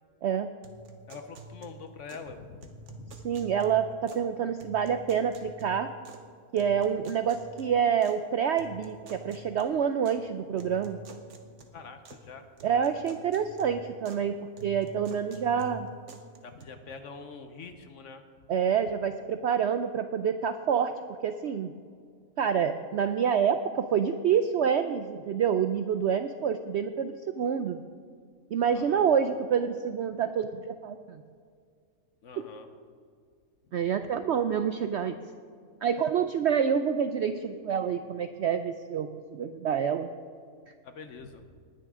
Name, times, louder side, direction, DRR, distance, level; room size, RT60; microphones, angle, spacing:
sound 1, 0.6-2.3 2.6-4.3 4.6-6.3 6.6-8.2 8.6-10.2 10.6-12.3 12.6-14.3 14.6-16.6, right 3 dB, 55° right, 1.2 m, -48 dB
voice 1, 1.1-3.2 11.7-12.4 12.8-12.9 16.4-18.2 28.7-29.1 32.2-32.7 40.8-41.5, left 4 dB, 60° left, 8 dB, 1.1 m, -45 dB
voice 2, 3.2-5.9 6.5-11.0 12.6-15.9 18.5-20.9 21.2-21.7 22.4-27.8 28.5-31.2 32.4-32.5 33.7-35.2 35.8-40.1, right 7 dB, 70° right, 9 dB, 0.6 m, -27 dB
19.5 x 9.4 x 3.7 m, 2.1 s
omnidirectional pair, 1.6 m